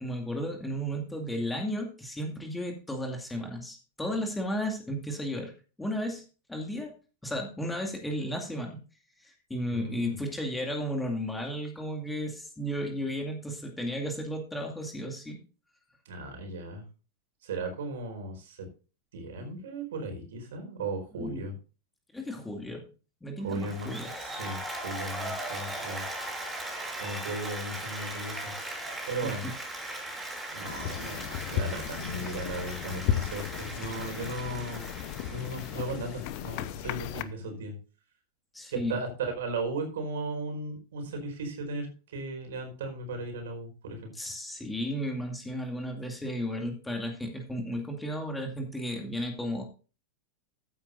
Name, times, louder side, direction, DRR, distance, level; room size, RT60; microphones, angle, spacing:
voice 1, 0.0-5.5 5.8-6.2 6.5-6.9 7.2-8.8 9.2-15.4 21.1-21.4 22.1-22.9 23.2-24.1 29.2-29.3 38.5-39.0 44.1-49.6, equal, 5° left, 2 dB, 2.3 m, -34 dB
voice 2, 9.7-10.2 16.0-16.8 17.4-18.6 19.1-21.5 23.4-23.9 24.2-26.0 27.0-28.5 29.1-29.5 30.5-34.8 35.3-37.7 38.7-44.1, right 2 dB, 60° right, 4 dB, 4.5 m, -36 dB
Applause, 23.5-36.7, right 1 dB, 10° right, 5.7 m, -39 dB
sound 1, 30.6-37.2, left 11 dB, 45° left, 0.9 m, -35 dB
15.0 x 9.3 x 2.6 m, 0.34 s
figure-of-eight pair, 90°, 0 cm